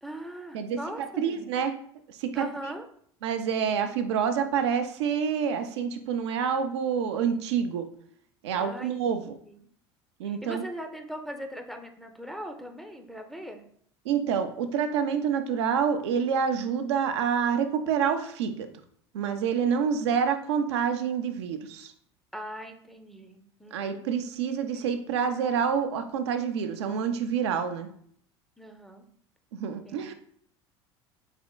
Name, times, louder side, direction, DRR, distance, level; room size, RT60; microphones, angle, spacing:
voice 1, 0.0-1.5 2.4-2.8 8.6-9.6 10.3-13.6 22.3-24.0 28.6-29.0 29.9-30.1, equal, ahead, 4 dB, 0.5 m, -40 dB
voice 2, 0.5-1.7 2.1-2.7 3.2-7.9 8.4-9.3 10.2-10.6 14.0-18.7 19.1-21.9 23.7-27.9 29.5-30.1, right 7 dB, 70° right, 8 dB, 0.5 m, -27 dB
4.2 x 3.5 x 2.2 m, 0.63 s
figure-of-eight pair, 70°, 15 cm